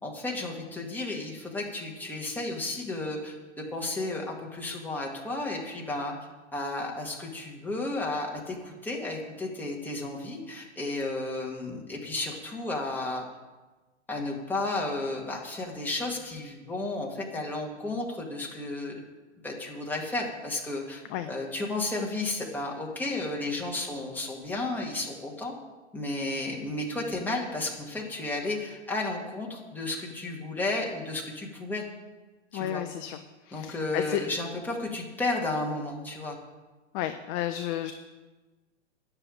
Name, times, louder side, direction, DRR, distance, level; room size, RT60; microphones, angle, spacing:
voice 1, 0.0-6.1 6.5-13.3 14.1-19.0 19.4-25.5 25.9-31.8 32.5-32.8 33.5-36.4, left 2 dB, 5° left, -2 dB, 2.0 m, -33 dB
voice 2, 32.5-33.2 33.4-34.2 36.9-37.9, left 12 dB, 25° left, 9 dB, 0.5 m, -32 dB
9.7 x 6.9 x 9.0 m, 1.2 s
hypercardioid pair, 120°, 36 cm